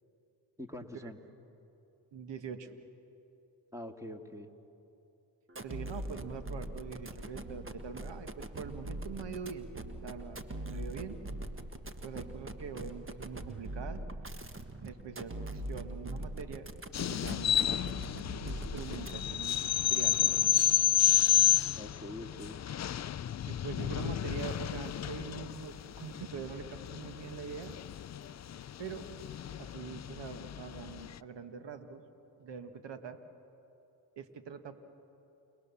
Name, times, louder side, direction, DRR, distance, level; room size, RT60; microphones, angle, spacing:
voice 1, 0.6-1.2 3.7-4.5 21.8-22.6, left 1 dB, 5° right, 4 dB, 2.3 m, -44 dB
voice 2, 2.1-2.7 5.6-9.7 10.0-11.2 12.0-14.0 14.8-16.7 17.0-17.8 18.4-20.7 23.5-27.8 28.8-29.1 29.6-32.0 32.4-33.2 34.2-34.8, right 6 dB, 60° right, 8 dB, 1.8 m, -43 dB
sound 1, 5.5-19.5, right 1 dB, 25° right, 1.6 m, -42 dB
sound 2, 16.9-31.1, left 11 dB, 35° left, 0.5 m, -30 dB
29.0 x 19.5 x 7.1 m, 2.8 s
supercardioid pair, 45°, 47 cm